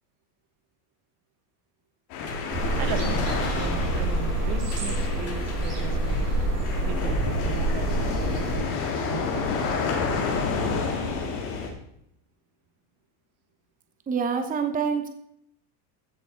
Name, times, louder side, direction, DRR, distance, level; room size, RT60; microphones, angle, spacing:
sound 1, 2.1-11.7, left 5 dB, 75° left, 3.6 m, -30 dB
sound 2, 2.3-9.0, left 5 dB, 30° left, 2.0 m, -44 dB
sound 3, 2.5-8.6, right 2 dB, 35° right, 3.9 m, -27 dB
voice 1, 2.8-3.2 3.5-6.2 6.8-9.8, right 9 dB, 55° right, 8 dB, 1.6 m, -37 dB
voice 2, 14.1-15.1, right 6 dB, 15° right, 7 dB, 0.9 m, -26 dB
15.0 x 6.9 x 4.6 m, 0.74 s
supercardioid pair, 125°, 46 cm